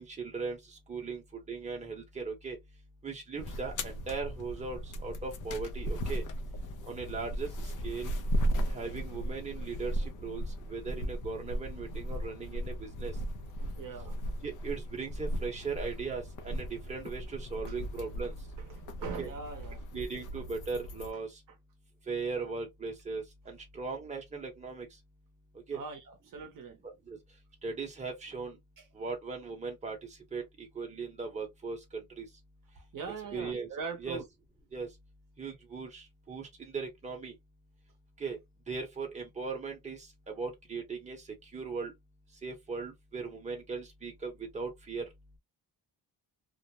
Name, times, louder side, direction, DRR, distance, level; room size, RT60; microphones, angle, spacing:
voice 1, 0.0-2.6 3.0-6.2 6.9-8.1 8.7-13.1 14.4-18.3 19.2-19.3 19.9-21.4 22.1-24.9 25.7-25.8 26.8-27.2 27.6-28.6 28.9-32.3 33.3-33.7 34.0-34.2 34.7-34.9 35.4-37.3 38.2-38.4 38.7-41.9 42.4-45.1, right 4 dB, 20° right, 0.8 m, -38 dB
sound 1, 3.4-21.1, equal, 55° left, 0.6 m, -36 dB
voice 2, 13.6-14.2 19.0-19.8 25.7-26.8 28.8-28.9 32.9-34.2, right 5 dB, 60° right, 0.7 m, -41 dB
2.3 x 2.0 x 2.8 m
wide cardioid pair, 175°, 38 cm